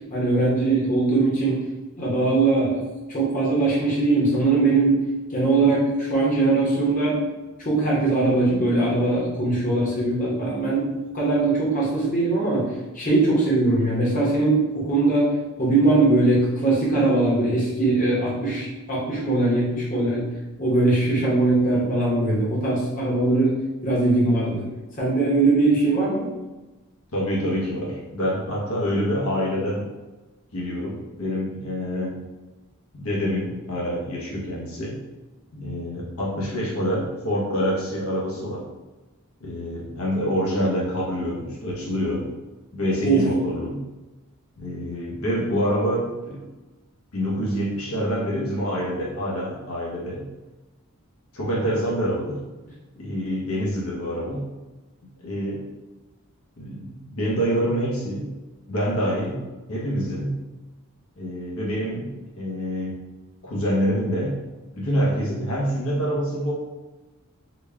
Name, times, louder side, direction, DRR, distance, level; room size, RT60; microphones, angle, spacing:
voice 1, 0.1-1.6 2.0-2.8 3.1-5.0 5.3-7.2 7.6-12.7 12.9-15.3 15.6-23.6 23.8-24.7 25.0-26.3 43.0-43.3, right 2 dB, 35° left, -5 dB, 1.0 m, -21 dB
voice 2, 27.1-29.9 30.5-32.1 32.9-35.0 35.5-38.6 39.4-42.3 42.7-43.8 44.6-46.4 47.1-50.3 51.3-52.4 53.0-54.5 55.2-55.7 56.6-58.3 58.7-59.4 59.7-60.4 61.2-62.9 63.4-64.4 64.7-66.5, equal, 70° left, -4 dB, 0.8 m, -26 dB
3.9 x 2.3 x 3.3 m, 1.1 s
head